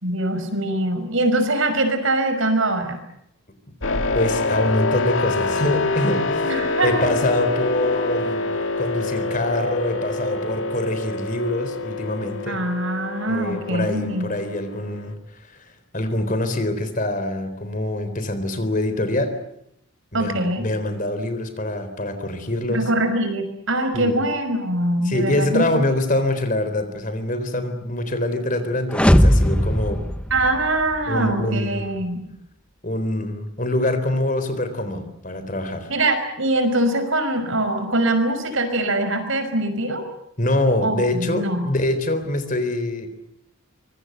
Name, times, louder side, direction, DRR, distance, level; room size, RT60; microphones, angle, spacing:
voice 1, 0.0-3.0 6.4-7.1 12.5-14.3 20.1-20.6 22.7-25.6 30.3-32.2 35.9-40.0 40.8-41.7, right 1 dB, 65° right, 8 dB, 5.6 m, -23 dB
sound 1, 3.8-15.1, left 3 dB, 65° left, 2.4 m, -26 dB
voice 2, 3.9-6.5 6.8-12.6 13.3-15.1 15.5-19.4 20.1-22.8 23.9-24.2 25.0-30.0 31.1-32.0 32.8-35.9 40.4-43.1, left 1 dB, 35° left, 10 dB, 3.8 m, -24 dB
sound 2, 28.9-31.0, equal, 5° left, 0.9 m, -18 dB
25.5 x 23.0 x 8.1 m, 0.77 s
head